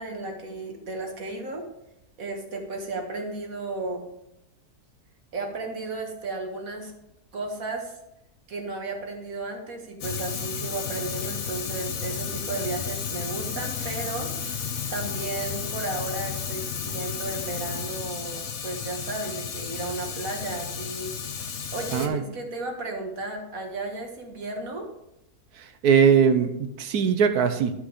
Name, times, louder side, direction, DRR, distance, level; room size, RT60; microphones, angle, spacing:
voice 1, 0.0-1.6 2.2-4.1 5.3-6.9 7.3-7.9 8.5-21.2 21.7-24.9, right 3 dB, 60° right, 2 dB, 2.0 m, -34 dB
Fire, 10.0-22.1, left 6 dB, 75° left, 1.5 m, -33 dB
voice 2, 21.9-22.2 25.6-27.7, right 7 dB, 80° right, 9 dB, 1.3 m, -21 dB
12.0 x 5.4 x 5.0 m, 0.86 s
omnidirectional pair, 1.7 m